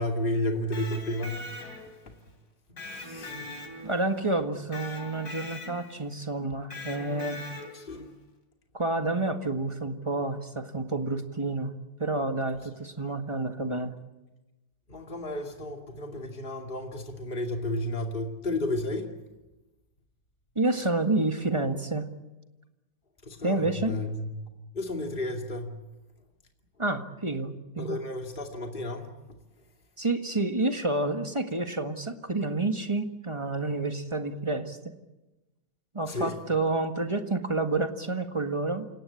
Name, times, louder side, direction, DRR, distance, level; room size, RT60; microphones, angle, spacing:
voice 1, 0.0-1.6 2.8-3.5 7.7-8.1 14.9-19.1 23.3-24.3 24.7-25.8 27.8-29.1 36.1-36.4, left 1 dB, 35° left, 3 dB, 2.7 m, -32 dB
Electric guitar, 0.5-2.1 2.8-4.2 4.7-6.0 6.7-7.9, left 2 dB, 80° left, 4.2 m, -41 dB
voice 2, 3.8-7.4 8.7-11.7 12.0-13.9 20.5-22.1 23.4-24.0 26.8-28.0 30.0-34.9 35.9-38.9, right 2 dB, 20° right, 6 dB, 1.7 m, -29 dB
28.5 x 18.0 x 8.5 m, 1.1 s
omnidirectional pair, 1.7 m